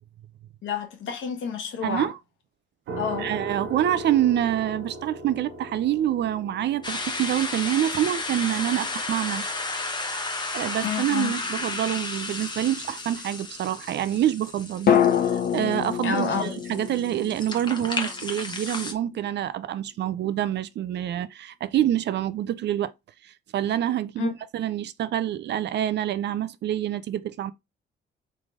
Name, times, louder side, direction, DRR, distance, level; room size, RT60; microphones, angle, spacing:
voice 1, 0.6-2.1 3.0-3.3 10.8-11.3 16.0-16.5 24.2-24.3, left 6 dB, 75° left, 1.4 m, -29 dB
voice 2, 1.8-2.2 3.2-9.4 10.5-14.9 15.3-22.9 23.2-27.5, right 11 dB, 60° right, 0.5 m, -26 dB
sound 1, 2.9-15.7, right 1 dB, 80° right, 1.1 m, -42 dB
sound 2, 6.8-18.9, left 3 dB, 20° left, 1.0 m, -33 dB
sound 3, 11.3-12.4 14.9-18.8 19.1-19.2, left 8 dB, 50° left, 0.9 m, -27 dB
3.7 x 3.2 x 3.6 m
cardioid pair, 90°, 20 cm